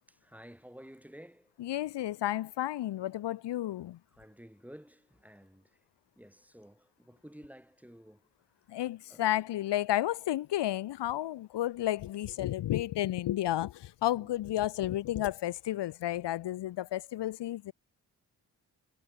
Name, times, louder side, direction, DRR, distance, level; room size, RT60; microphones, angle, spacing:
voice 1, 0.1-1.5 4.1-5.8 6.2-8.2 9.1-9.2 14.2-14.3, equal, 5° right, 7.9 m, -52 dB
voice 2, 1.6-4.0 8.7-17.7, left 13 dB, 85° left, 1.2 m, -32 dB
supercardioid pair, 45°, 41 cm